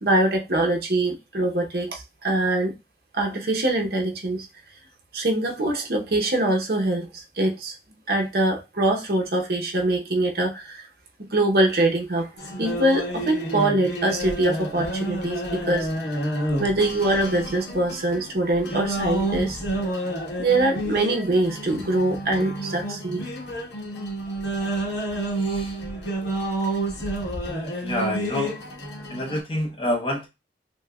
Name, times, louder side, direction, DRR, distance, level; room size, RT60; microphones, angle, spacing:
voice 1, 0.0-2.7 3.1-4.5 5.1-7.7 8.1-10.9 11.2-12.3 12.6-15.9 16.6-19.6 20.4-23.2, right 1 dB, 55° right, 0.7 m, -23 dB
sound 1, 12.4-29.4, right 1 dB, 90° left, 1.2 m, -29 dB
voice 2, 25.3-25.8 27.5-28.6 29.1-30.3, left 1 dB, 30° left, 0.6 m, -28 dB
6.1 x 2.1 x 2.2 m
head